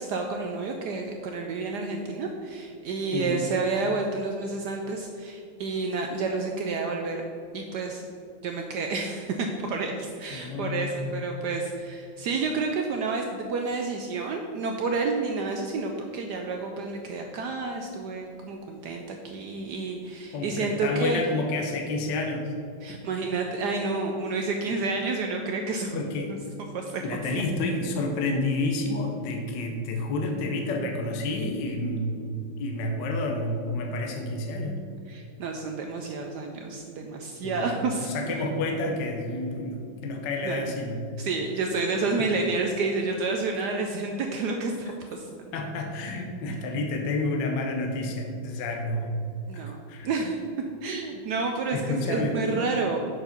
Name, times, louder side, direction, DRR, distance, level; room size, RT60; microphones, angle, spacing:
voice 1, 0.0-7.2 7.5-8.0 8.4-21.3 22.8-26.0 26.7-27.4 35.1-38.1 40.4-40.6 41.2-45.5 49.5-50.4 50.8-53.0, right 3 dB, 75° right, 2 dB, 1.0 m, -30 dB
voice 2, 10.3-11.3 20.3-22.5 25.9-26.3 27.0-34.8 37.4-37.7 38.0-41.0 45.5-49.1 49.5-49.6 49.9-50.1 51.7-52.5, left 2 dB, 65° left, 2 dB, 1.4 m, -29 dB
6.7 x 4.6 x 5.8 m, 2.4 s
omnidirectional pair, 2.3 m